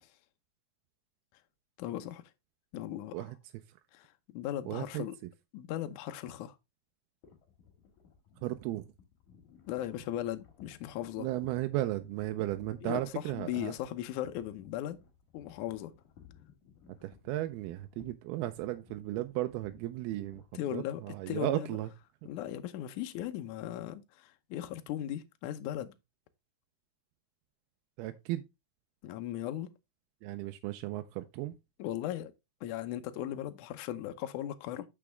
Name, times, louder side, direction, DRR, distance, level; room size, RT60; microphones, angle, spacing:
voice 1, 1.8-2.2 2.7-3.2 3.9-4.1 4.3-5.2 5.5-6.6 9.7-11.3 12.8-15.0 15.3-15.9 20.5-21.7 22.3-25.9 29.0-29.7 31.8-32.3 32.6-34.9, left 12 dB, 80° left, 1.8 m, -37 dB
voice 2, 4.7-5.1 8.4-8.8 11.2-13.7 17.0-20.4 20.7-21.9 28.0-28.4 30.2-31.5, right 15 dB, 80° right, 2.5 m, -35 dB
sound 1, 7.2-21.3, left 7 dB, 55° left, 3.3 m, -59 dB
8.6 x 6.1 x 3.3 m
omnidirectional pair, 4.6 m